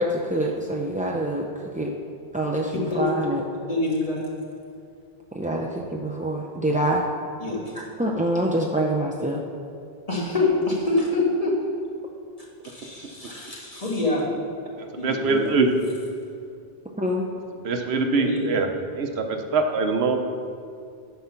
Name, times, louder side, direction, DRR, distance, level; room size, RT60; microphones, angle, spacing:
voice 1, 0.0-1.5 1.7-1.9 2.3-3.4 5.3-7.0 7.8-9.4 17.0-17.2, right 1 dB, 15° right, -2 dB, 0.3 m, -25 dB
voice 2, 3.7-4.3 7.4-7.6 10.1-11.5 12.6-14.2 15.0-15.6 18.1-18.4, left 2 dB, 35° left, -4 dB, 1.8 m, -25 dB
voice 3, 15.0-15.7 17.6-18.7 18.9-20.2, right 4 dB, 80° right, 5 dB, 1.1 m, -23 dB
9.6 x 5.7 x 5.7 m, 2.3 s
omnidirectional pair, 1.0 m